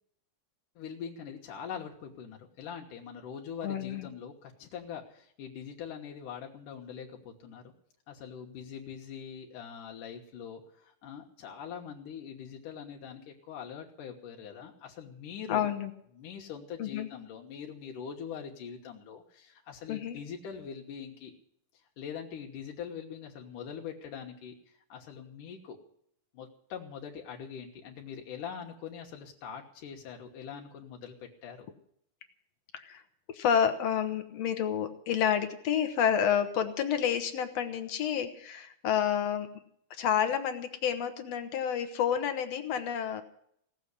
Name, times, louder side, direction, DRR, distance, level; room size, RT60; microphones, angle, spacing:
voice 1, 0.8-7.7 8.1-15.7 16.1-21.3 22.0-24.5 24.9-25.8 26.3-31.7, left 7 dB, 85° left, 1 dB, 2.9 m, -43 dB
voice 2, 3.6-4.1 15.5-15.9 16.8-17.1 19.9-20.2 32.7-33.0 33.3-39.5 40.0-43.2, left 8 dB, 65° left, 9 dB, 2.0 m, -29 dB
17.5 x 7.6 x 9.7 m, 0.68 s
omnidirectional pair, 3.6 m